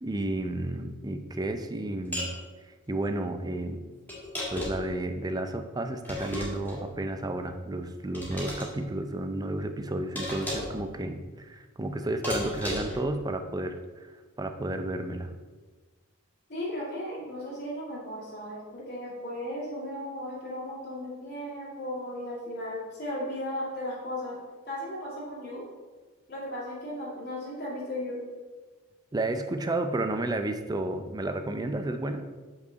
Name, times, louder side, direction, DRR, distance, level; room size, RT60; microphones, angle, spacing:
voice 1, 0.0-2.4 2.7-3.8 4.5-14.1 14.4-15.3 29.1-32.2, right 2 dB, 20° right, 7 dB, 0.4 m, -32 dB
sound 1, 2.1-2.4 4.1-4.9 6.0-6.8 8.1-8.7 10.2-10.8 12.2-13.0, left 1 dB, 10° left, 2.0 m, -34 dB
voice 2, 16.5-24.4 24.7-25.6 26.3-28.2, left 1 dB, 50° left, -7 dB, 2.2 m, -36 dB
7.1 x 5.5 x 3.9 m, 1.3 s
head